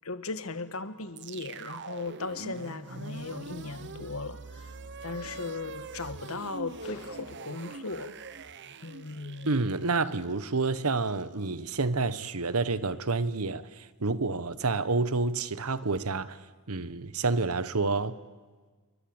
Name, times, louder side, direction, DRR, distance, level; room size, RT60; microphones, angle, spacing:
voice 1, 0.0-4.7 5.0-8.1 8.8-9.6, left 3 dB, 70° left, 1.6 m, -37 dB
sound 1, 1.2-11.4, right 4 dB, 55° right, 0.8 m, -44 dB
sound 2, 2.3-7.8, left 2 dB, 50° left, 6.3 m, -56 dB
voice 2, 9.4-16.4 16.7-18.2, right 3 dB, 80° right, 1.2 m, -29 dB
28.0 x 23.5 x 8.9 m
head